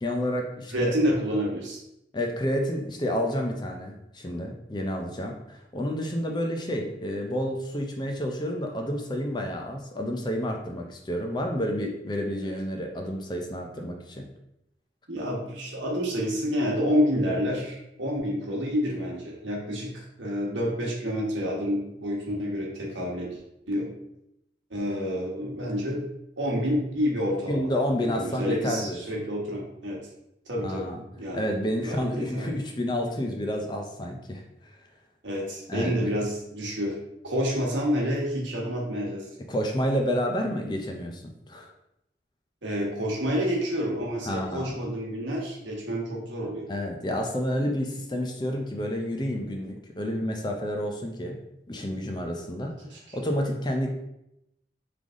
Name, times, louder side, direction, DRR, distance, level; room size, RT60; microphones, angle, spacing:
voice 1, 0.0-0.9 2.1-14.2 27.5-29.0 30.6-31.0 31.3-34.7 35.7-36.1 39.5-41.7 44.3-44.8 46.7-51.4 51.7-52.7 53.1-53.9, equal, 25° left, 2 dB, 0.5 m, -30 dB
voice 2, 0.7-1.8 15.1-23.4 23.7-23.9 24.7-26.0 26.4-27.7 28.0-30.0 30.5-31.5 31.8-32.5 35.2-37.0 37.2-39.2 42.6-46.7 52.9-53.2, equal, 85° right, -2 dB, 1.3 m, -28 dB
3.8 x 3.4 x 3.6 m, 0.83 s
head